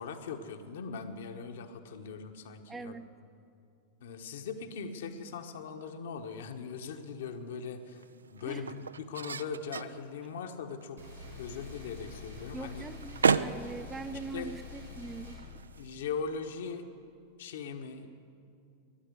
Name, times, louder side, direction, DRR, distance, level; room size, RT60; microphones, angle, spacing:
voice 1, 0.0-3.0 4.0-8.0 8.3-11.0 11.4-12.8 14.3-14.6 15.8-16.9 17.4-18.1, left 5 dB, 60° left, 6 dB, 1.0 m, -40 dB
voice 2, 2.7-3.0 8.4-8.7 12.5-15.4, right 4 dB, 15° right, 13 dB, 0.5 m, -42 dB
sound 1, 6.3-16.7, right 5 dB, 70° right, 0.3 m, -37 dB
sound 2, 11.0-15.4, left 4 dB, 90° right, 4.9 m, -46 dB
12.5 x 10.5 x 9.6 m, 2.5 s
figure-of-eight pair, 90°, 0 cm